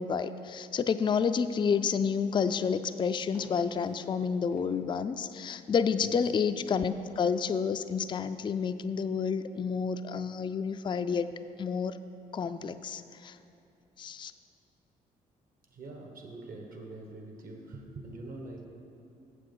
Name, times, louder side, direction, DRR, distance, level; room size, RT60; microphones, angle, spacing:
voice 1, 0.0-11.3 11.6-12.0 12.3-13.4 14.0-14.3, left 6 dB, 30° left, 10 dB, 0.3 m, -30 dB
Walk footsteps, 0.9-5.2, right 2 dB, 90° right, 1.9 m, -54 dB
voice 2, 15.7-18.7, right 2 dB, 55° right, 2 dB, 1.4 m, -44 dB
7.5 x 6.7 x 5.4 m, 2.7 s
supercardioid pair, 55°, 17 cm